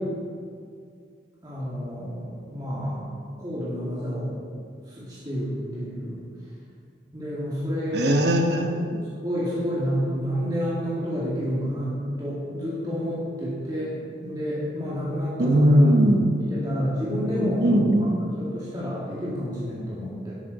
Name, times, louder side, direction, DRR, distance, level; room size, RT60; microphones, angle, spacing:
voice 1, 1.4-3.0 3.4-4.3 5.0-6.2 7.1-8.1 9.2-13.9 14.2-15.9 16.4-17.6 18.0-18.1 18.4-20.3, equal, 20° right, -9 dB, 2.1 m, -29 dB
voice 2, 7.9-9.1 15.4-16.4 17.6-18.2, right 1 dB, 60° right, 4 dB, 1.0 m, -19 dB
11.5 x 9.0 x 4.1 m, 2.2 s
head